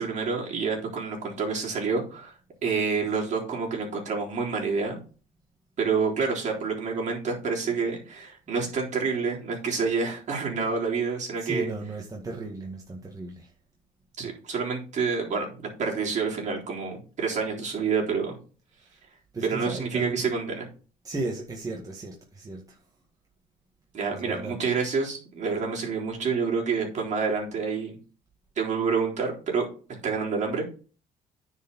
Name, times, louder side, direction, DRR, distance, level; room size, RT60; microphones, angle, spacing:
voice 1, 0.0-2.4 2.6-5.0 5.8-11.7 14.2-18.4 19.4-20.7 23.9-28.0 28.6-30.7, right 5 dB, 45° right, 3.9 m, -28 dB
voice 2, 11.4-13.5 18.8-19.0 19.3-20.2 21.0-22.8 24.1-24.6, right 2 dB, 20° right, 1.9 m, -35 dB
9.6 x 4.9 x 5.5 m
cardioid pair, 110°, 17 cm